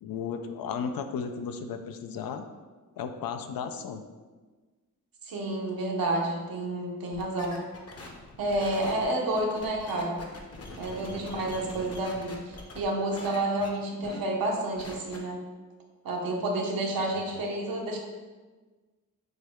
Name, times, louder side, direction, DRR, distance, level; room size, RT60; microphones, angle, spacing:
voice 1, 0.0-2.4 3.0-4.0 11.1-11.6 17.0-17.4, left 6 dB, 85° left, 7 dB, 0.5 m, -35 dB
voice 2, 5.3-7.6 8.4-10.2 10.8-15.4 16.0-18.0, right 1 dB, 85° right, -1 dB, 0.9 m, -30 dB
sound 1, 7.1-12.8 13.1-13.7 14.0-14.2 14.5-15.2, left 2 dB, 45° left, 0.8 m, -43 dB
6.5 x 2.2 x 3.5 m, 1.3 s
cardioid pair, 80°, 34 cm